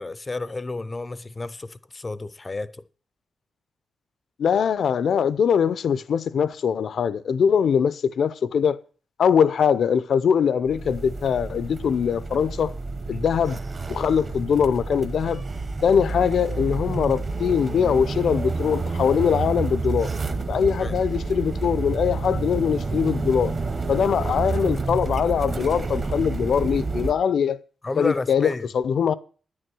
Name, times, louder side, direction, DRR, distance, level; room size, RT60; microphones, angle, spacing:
voice 1, 0.0-2.8 20.8-21.0 27.8-28.7, left 3 dB, 20° left, 0.5 m, -31 dB
voice 2, 4.4-8.8 9.2-12.7 13.1-13.6 13.9-15.4 15.8-20.1 20.5-23.5 23.9-27.6 28.0-29.1, left 7 dB, 60° left, 0.6 m, -22 dB
sound 1, 10.6-27.1, right 3 dB, 30° right, 0.9 m, -29 dB
9.9 x 9.7 x 6.2 m
wide cardioid pair, 170°, 0 cm